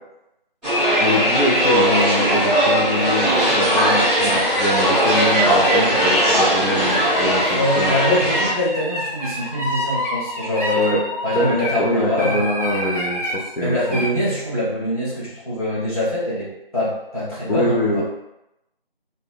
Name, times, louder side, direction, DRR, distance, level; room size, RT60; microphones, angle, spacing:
sound 1, 0.6-8.5, equal, ahead, 0.6 m, -18 dB
voice 1, 1.0-8.3 10.8-11.0 11.3-14.0 17.5-18.0, left 1 dB, 70° left, -5 dB, 0.7 m, -24 dB
sound 2, 2.2-11.8 12.2-13.4 13.8-14.1, left 1 dB, 40° right, 0.5 m, -28 dB
voice 2, 7.5-11.0 11.2-12.6 13.6-18.0, left 1 dB, 40° left, -10 dB, 1.0 m, -23 dB
2.7 x 2.1 x 2.3 m, 0.88 s
figure-of-eight pair, 175°, 30 cm